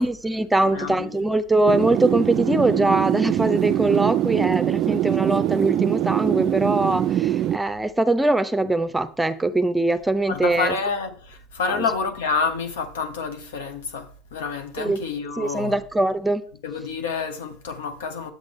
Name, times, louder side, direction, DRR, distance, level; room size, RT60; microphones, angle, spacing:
voice 1, 0.0-10.8 11.7-11.9 14.8-15.0 15.4-16.4, right 2 dB, 10° right, 0.7 m, -22 dB
voice 2, 0.7-1.1 10.3-15.7 16.6-18.3, left 5 dB, 75° left, 1.2 m, -28 dB
sound 1, 1.7-7.6, right 12 dB, 50° right, 0.3 m, -23 dB
9.0 x 7.7 x 3.7 m
hypercardioid pair, 75°, 0 cm